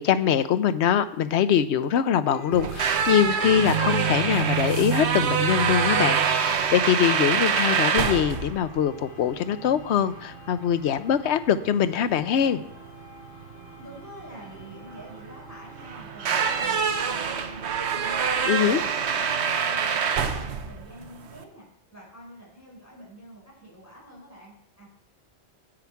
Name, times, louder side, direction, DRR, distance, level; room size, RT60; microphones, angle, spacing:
voice 1, 0.0-12.6 18.5-18.8, left 9 dB, 70° left, 13 dB, 0.9 m, -23 dB
sound 1, 2.2-19.4, right 3 dB, 50° left, 1.6 m, -47 dB
sound 2, 2.5-21.4, right 6 dB, 70° right, 1.1 m, -26 dB
voice 2, 13.7-17.6 17.9-24.9, right 1 dB, 15° left, -4 dB, 4.8 m, -47 dB
10.0 x 8.4 x 4.6 m, 0.71 s
omnidirectional pair, 1.2 m